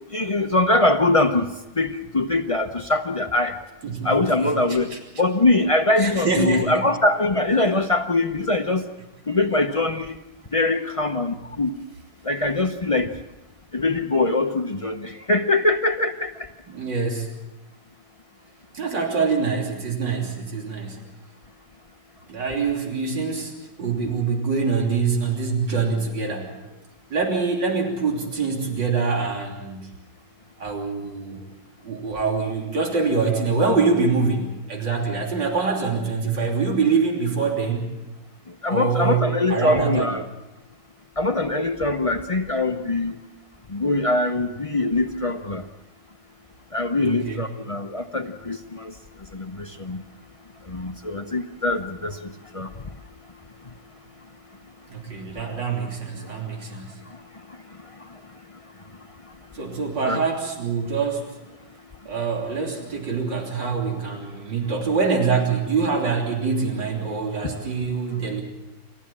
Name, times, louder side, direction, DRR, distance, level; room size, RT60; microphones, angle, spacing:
voice 1, 0.1-1.5 1.8-3.5 4.0-8.9 9.3-10.2 10.5-11.7 12.3-13.1 13.7-16.3 38.6-40.2 41.2-43.2 43.7-45.6 46.7-48.9 49.3-50.0 50.7-52.2 52.5-52.7 60.0-60.2 67.4-67.5, left 2 dB, 55° left, 5 dB, 0.3 m, -22 dB
voice 2, 3.8-5.0 6.0-6.9 16.7-17.4 18.7-21.0 22.3-23.5 23.8-26.6 27.1-29.9 30.6-31.4 31.8-37.9 38.7-40.1 47.0-47.4 54.9-57.0 59.5-61.3 62.1-68.4, right 4 dB, 65° right, 0 dB, 3.8 m, -25 dB
28.0 x 14.5 x 7.4 m, 1.0 s
omnidirectional pair, 2.1 m